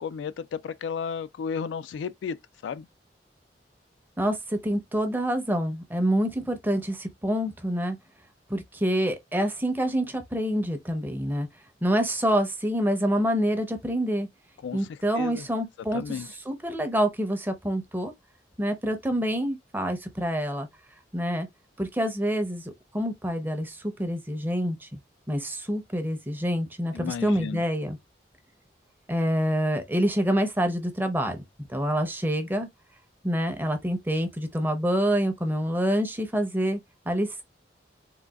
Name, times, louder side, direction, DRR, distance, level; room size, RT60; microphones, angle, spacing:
voice 1, 0.0-2.9 14.6-15.5 15.9-16.3 26.9-27.6, left 6 dB, 85° left, 0.3 m, -33 dB
voice 2, 4.2-8.0 8.5-11.5 11.8-14.3 14.7-18.1 18.6-20.7 21.1-21.5 21.8-25.0 25.3-28.0 29.1-31.4 31.7-32.7 33.2-36.8 37.1-37.4, equal, 10° right, 0.6 m, -27 dB
3.7 x 2.3 x 2.2 m
head